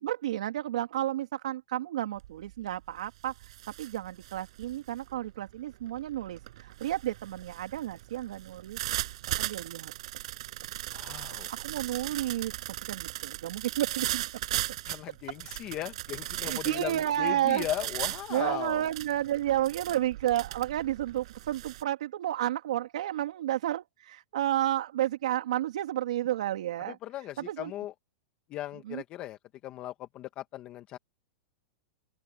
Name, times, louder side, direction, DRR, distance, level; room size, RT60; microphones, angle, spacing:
voice 1, 0.0-8.8 9.4-9.9 11.6-12.6 12.9-14.3 14.5-14.6 16.4-17.7 18.3-27.0 27.4-27.7 28.8-29.0, right 12 dB, 80° right, 3.1 m, -31 dB
sound 1, 2.2-2.5 2.9-21.8, right 16 dB, 65° right, 6.0 m, -38 dB
voice 2, 10.9-11.5 14.9-18.8 27.0-27.9 28.5-29.4 29.6-31.0, left 14 dB, 30° left, 1.3 m, -37 dB
supercardioid pair, 160°, 4 cm